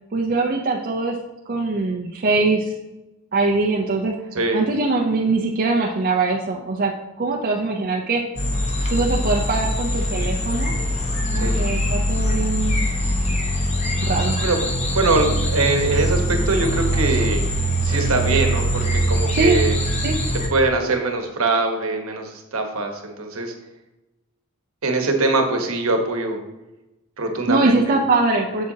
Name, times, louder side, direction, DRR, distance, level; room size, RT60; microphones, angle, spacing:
voice 1, 0.1-1.2 1.5-2.7 3.3-6.9 7.2-8.2 8.9-10.8 11.3-12.9 14.0-14.4 19.3-19.6 20.0-20.2 27.5-28.7, right 3 dB, 45° right, 0 dB, 0.6 m, -22 dB
voice 2, 4.3-4.6 11.3-11.6 14.4-14.6 14.9-17.4 17.8-19.8 20.5-23.5 24.8-26.4 27.2-27.8, right 2 dB, 70° right, 4 dB, 1.1 m, -22 dB
sound 1, 8.4-20.5, equal, 30° left, 1.0 m, -22 dB
7.5 x 7.4 x 2.8 m, 1.0 s
head